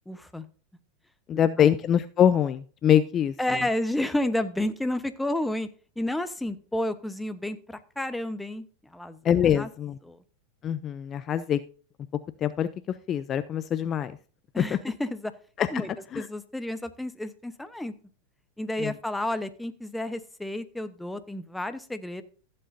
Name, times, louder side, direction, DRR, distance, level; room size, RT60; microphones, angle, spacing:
voice 1, 0.1-0.4 1.3-1.7 3.4-5.7 6.0-8.7 8.9-9.2 9.5-9.7 10.0-10.2 14.5-15.3 15.7-17.9 18.6-22.2, left 1 dB, 5° left, 10 dB, 1.0 m, -31 dB
voice 2, 1.3-3.3 9.2-10.0 10.6-11.6 12.4-12.7 13.1-14.2 14.6-14.8 15.6-15.7 16.1-16.2 18.8-18.9, left 9 dB, 35° left, 13 dB, 0.5 m, -23 dB
15.0 x 7.8 x 2.7 m, 0.39 s
hypercardioid pair, 105°, 0 cm